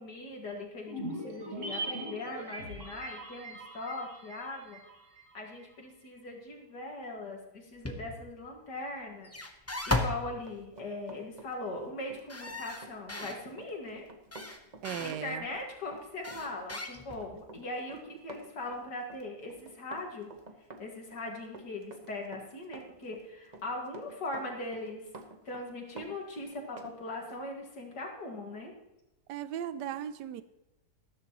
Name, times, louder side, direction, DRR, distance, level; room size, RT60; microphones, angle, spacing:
voice 1, 0.0-4.8 5.3-9.3 9.9-14.1 15.0-20.3 20.8-25.0 25.4-28.7, left 2 dB, 75° left, 0 dB, 2.6 m, -40 dB
sound 1, 0.9-5.4 5.6-5.7, right 1 dB, 45° right, 2.1 m, -41 dB
sound 2, 7.8-8.3 9.2-10.3 12.3-13.4 14.3-15.2 16.2-17.3, left 2 dB, 10° left, 0.7 m, -35 dB
Run, 10.0-27.0 27.3-27.4, right 2 dB, 30° right, 1.1 m, -50 dB
voice 2, 14.8-15.4 29.3-30.4, right 10 dB, 85° right, 13 dB, 1.2 m, -37 dB
13.5 x 13.0 x 3.0 m, 0.94 s
omnidirectional pair, 1.8 m